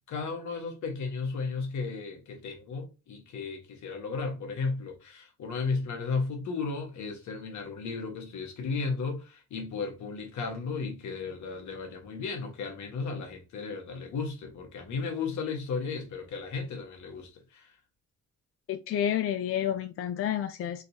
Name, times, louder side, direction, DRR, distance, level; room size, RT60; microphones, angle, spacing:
voice 1, 0.1-17.7, left 4 dB, 70° left, 1.3 m, -34 dB
voice 2, 18.7-20.8, left 10 dB, 50° left, 0.4 m, -30 dB
3.7 x 2.7 x 2.7 m
cardioid pair, 90°, 30 cm